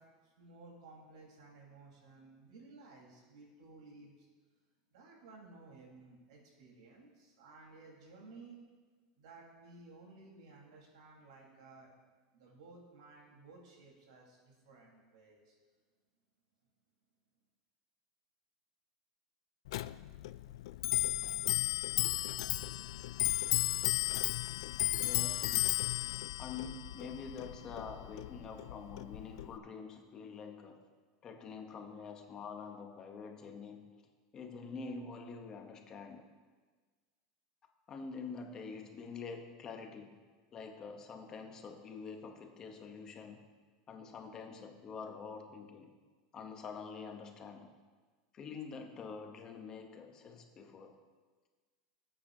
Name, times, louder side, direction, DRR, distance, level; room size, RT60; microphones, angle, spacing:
voice 1, 0.0-4.3 4.9-8.7 9.2-11.9 12.3-15.6, right 3 dB, 85° right, -2 dB, 3.9 m, -56 dB
Clock, 19.7-29.6, left 16 dB, 70° left, 0.3 m, -34 dB
voice 2, 25.0-25.6 26.4-30.8 31.2-34.0 34.3-36.2 37.9-40.2 40.5-43.5 43.9-45.9 46.3-47.7 48.3-51.0, left 5 dB, 20° left, 4 dB, 0.8 m, -46 dB
18.5 x 8.7 x 2.7 m, 1.4 s
supercardioid pair, 175°, 3 cm